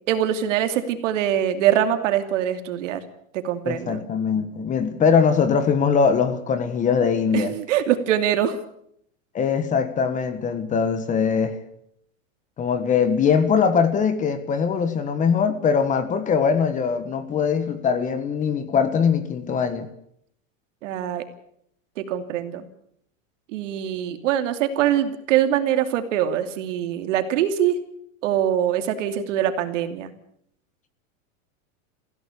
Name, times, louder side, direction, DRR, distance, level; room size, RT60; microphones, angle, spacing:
voice 1, 0.1-3.0 3.3-4.0 7.3-8.6 20.8-21.2 22.0-22.6 23.5-27.8 28.2-30.1, right 10 dB, 65° right, 2.8 m, -23 dB
voice 2, 3.6-7.5 9.3-11.6 12.6-19.9, left 6 dB, 20° left, 1.4 m, -21 dB
20.5 x 16.0 x 8.3 m
supercardioid pair, 160°, 40 cm